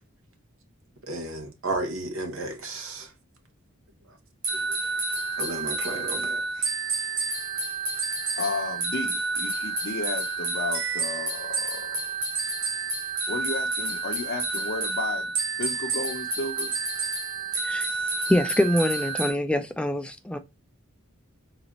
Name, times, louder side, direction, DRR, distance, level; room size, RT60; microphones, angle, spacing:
voice 1, 1.1-3.1 5.4-6.7, right 2 dB, 65° right, 0.9 m, -33 dB
sound 1, 4.4-19.3, right 4 dB, 90° right, 1.6 m, -29 dB
voice 2, 8.4-12.2 13.3-15.3 15.6-16.7, left 3 dB, 55° left, 0.6 m, -33 dB
voice 3, 17.6-18.0 18.3-20.4, left 1 dB, 5° left, 0.3 m, -24 dB
3.9 x 2.5 x 2.9 m
head